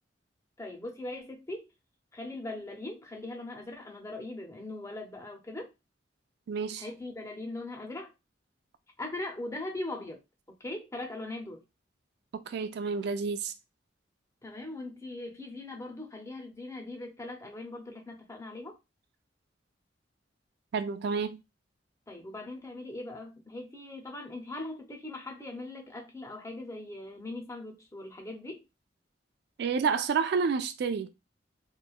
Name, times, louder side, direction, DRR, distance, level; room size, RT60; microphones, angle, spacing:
voice 1, 0.6-1.7 2.1-5.7 6.8-8.1 9.0-10.2 10.6-11.6 14.4-18.7 22.1-28.6, left 2 dB, 15° left, 0.5 m, -40 dB
voice 2, 6.5-6.9 12.3-13.5 20.7-21.4 29.6-31.1, right 5 dB, 60° right, 0.3 m, -29 dB
3.0 x 2.2 x 2.3 m
head